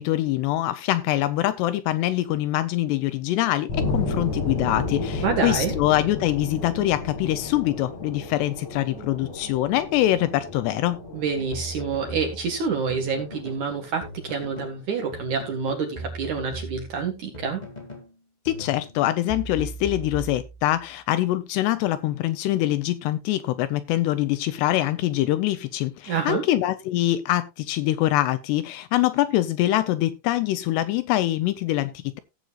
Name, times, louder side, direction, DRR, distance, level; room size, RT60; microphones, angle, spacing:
voice 1, 0.0-11.0 18.5-32.2, left 14 dB, 80° left, 2.6 m, -24 dB
sound 1, 3.7-14.5, left 3 dB, 40° left, 5.9 m, -33 dB
voice 2, 5.2-5.7 11.1-17.6 26.1-26.4, right 5 dB, 55° right, 2.4 m, -27 dB
sound 2, 11.5-13.7 14.0-14.8 15.1-18.1 18.5-20.9, right 1 dB, 15° left, 1.4 m, -38 dB
16.5 x 7.9 x 2.4 m
omnidirectional pair, 5.2 m